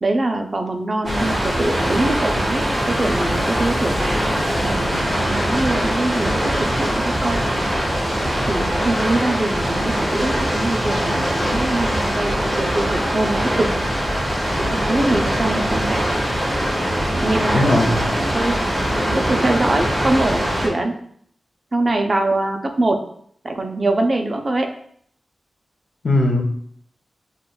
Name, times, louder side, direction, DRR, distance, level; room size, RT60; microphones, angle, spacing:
voice 1, 0.0-7.5 8.4-13.7 14.7-16.1 17.1-17.9 18.3-18.6 19.1-21.0 21.7-23.0 23.4-24.7, right 2 dB, 35° right, 3 dB, 0.5 m, -23 dB
Water, 1.0-20.7, equal, 15° right, 1.2 m, -22 dB
voice 2, 17.5-18.1 26.0-26.4, left 1 dB, 50° left, 2 dB, 0.6 m, -18 dB
6.4 x 2.3 x 2.2 m, 0.64 s
wide cardioid pair, 125°, 0 cm